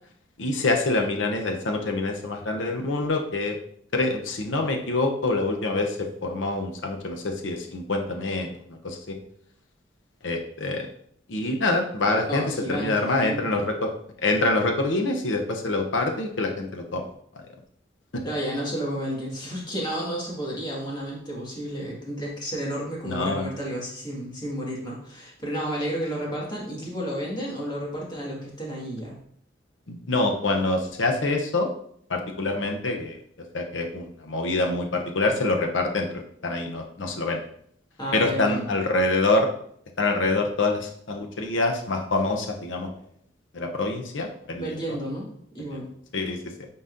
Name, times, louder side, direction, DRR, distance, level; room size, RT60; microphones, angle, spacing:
voice 1, 0.4-3.6 3.9-8.5 8.8-9.2 10.2-10.9 11.3-13.9 14.2-17.1 17.3-17.4 23.0-23.4 29.9-31.7 32.1-33.2 33.5-37.5 38.1-39.5 40.0-42.9 43.5-45.0 45.6-45.8 46.1-46.7, left 2 dB, 70° left, 3 dB, 0.8 m, -26 dB
voice 2, 12.2-13.4 18.2-29.2 38.0-38.6 44.5-45.3 45.5-45.9, equal, 20° left, -4 dB, 1.8 m, -31 dB
9.3 x 4.0 x 2.6 m, 0.66 s
head